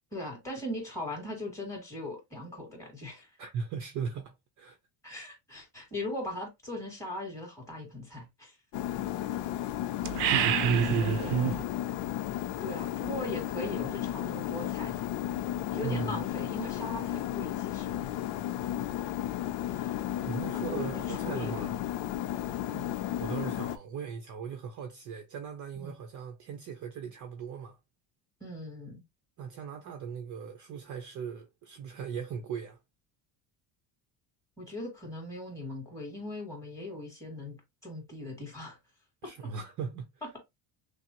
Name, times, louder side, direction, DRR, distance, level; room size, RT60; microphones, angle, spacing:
voice 1, 0.1-3.3 5.0-8.6 10.0-11.6 12.6-15.0 15.7-18.0 19.7-20.1 20.5-21.7 22.7-23.0 25.8-25.9 28.4-29.0 34.6-37.6 37.8-38.8, left 1 dB, 5° left, 2.3 m, -40 dB
voice 2, 3.4-4.8 10.9-11.1 14.3-14.4 15.8-16.2 20.2-21.8 23.2-27.8 29.4-32.8 39.2-40.1, right 6 dB, 40° right, 0.7 m, -38 dB
sound 1, 8.7-23.8, left 12 dB, 65° left, 0.6 m, -34 dB
sound 2, 10.0-11.6, right 8 dB, 85° right, 0.6 m, -26 dB
5.9 x 2.0 x 2.9 m
cardioid pair, 155°, 48 cm